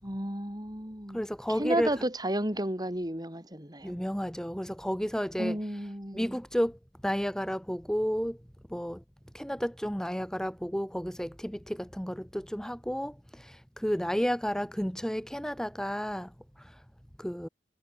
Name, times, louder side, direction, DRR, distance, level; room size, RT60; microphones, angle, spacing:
voice 1, 0.0-1.2 1.5-4.0 5.4-6.4, right 1 dB, 25° right, 7.8 m, -32 dB
voice 2, 1.1-1.9 3.8-5.6 6.1-8.4 8.7-9.0 9.3-16.3 16.6-16.8 17.2-17.5, equal, 5° left, 5.5 m, -32 dB
head